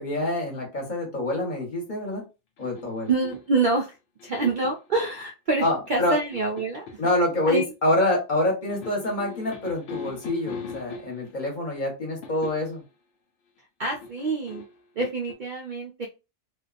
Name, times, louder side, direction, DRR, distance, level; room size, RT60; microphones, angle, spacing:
voice 1, 0.0-2.2 2.6-3.1 5.6-6.2 7.0-12.8, left 1 dB, 40° left, -1 dB, 1.1 m, -26 dB
sound 1, 2.6-3.6 4.2-4.9 5.9-7.1 8.7-11.4 12.2-12.8 13.9-15.3, left 5 dB, 70° left, 0.8 m, -40 dB
voice 2, 3.1-4.0 4.2-6.9 7.5-7.7 13.8-14.6 15.0-16.1, right 3 dB, 75° right, 0 dB, 0.4 m, -26 dB
2.5 x 2.2 x 2.4 m, 0.28 s
omnidirectional pair, 1.4 m